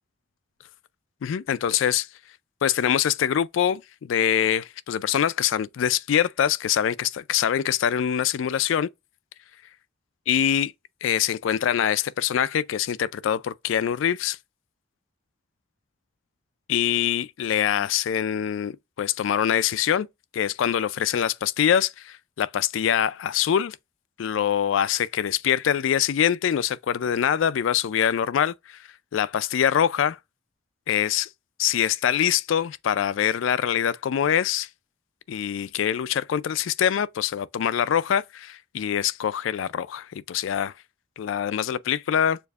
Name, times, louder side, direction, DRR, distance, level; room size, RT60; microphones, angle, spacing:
voice 1, 1.2-2.1 2.6-8.9 10.3-10.7 11.0-14.4 16.7-20.1 20.3-23.8 24.2-28.8 29.1-30.2 30.9-31.3 31.6-34.7 35.3-40.7 41.2-42.4, left 9 dB, 75° left, 0.3 m, -24 dB
6.8 x 2.5 x 2.3 m
head